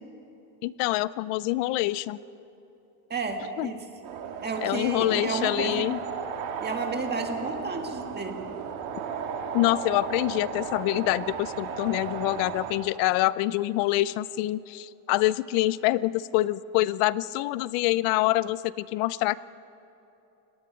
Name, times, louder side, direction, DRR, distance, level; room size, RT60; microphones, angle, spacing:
voice 1, 0.6-2.2 3.6-3.7 4.6-6.0 9.5-19.4, left 17 dB, 80° left, 18 dB, 0.7 m, -26 dB
voice 2, 3.1-3.8 4.4-5.9 6.6-8.4, right 4 dB, 20° right, 3 dB, 2.0 m, -32 dB
sound 1, 4.0-12.7, right 6 dB, 70° right, 2.8 m, -35 dB
29.5 x 18.5 x 5.3 m, 3.0 s
cardioid pair, 155°, 50 cm